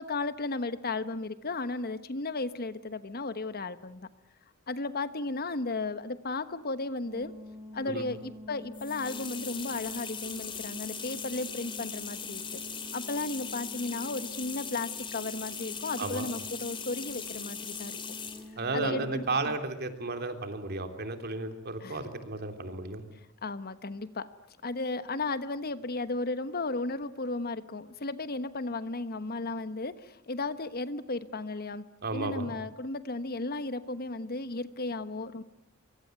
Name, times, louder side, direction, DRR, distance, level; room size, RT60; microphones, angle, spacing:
voice 1, 0.0-4.1 4.7-7.3 7.7-12.6 12.9-18.0 18.7-19.6 21.8-22.0 23.4-24.3 24.6-31.8 32.1-35.4, left 3 dB, 45° left, 13 dB, 1.2 m, -34 dB
sound 1, 7.1-19.4, equal, 15° right, 1.9 m, -47 dB
sound 2, 8.7-18.5, left 6 dB, 25° left, 2.7 m, -40 dB
voice 2, 18.6-23.0 32.0-32.5, right 3 dB, 50° right, 7 dB, 3.3 m, -33 dB
25.0 x 24.0 x 9.3 m, 0.78 s
head